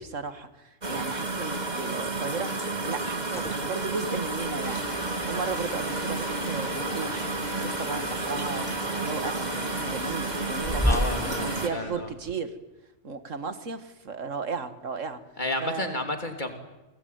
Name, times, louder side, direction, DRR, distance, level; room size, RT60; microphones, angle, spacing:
voice 1, 0.0-4.8 5.3-7.3 7.6-8.7 9.0-10.9 11.2-12.6 13.0-15.2 15.6-16.1, right 4 dB, 80° right, 11 dB, 2.2 m, -35 dB
sound 1, 0.8-11.7, right 3 dB, 35° right, 2.1 m, -31 dB
sound 2, 3.2-12.3, equal, 5° left, 0.9 m, -36 dB
sound 3, 4.6-11.9, left 2 dB, 70° left, 5.8 m, -39 dB
voice 2, 10.8-12.1 15.4-16.5, left 2 dB, 35° left, 6 dB, 3.3 m, -31 dB
29.0 x 21.0 x 9.5 m, 1.0 s
omnidirectional pair, 1.3 m